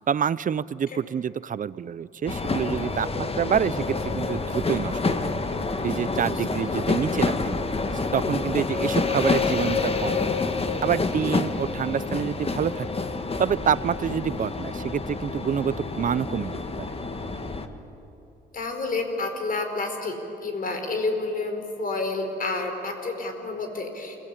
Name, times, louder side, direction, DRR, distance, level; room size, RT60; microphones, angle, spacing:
voice 1, 0.1-5.3 5.8-7.6 8.1-10.4 10.8-12.9 13.4-17.0, right 8 dB, 45° right, 18 dB, 0.6 m, -27 dB
sound 1, 2.3-17.7, left 3 dB, 30° left, 1.6 m, -28 dB
voice 2, 6.3-6.8 18.5-24.2, left 3 dB, 45° left, 5 dB, 4.8 m, -30 dB
29.0 x 21.0 x 8.6 m, 2.9 s
cardioid pair, 90°, 20 cm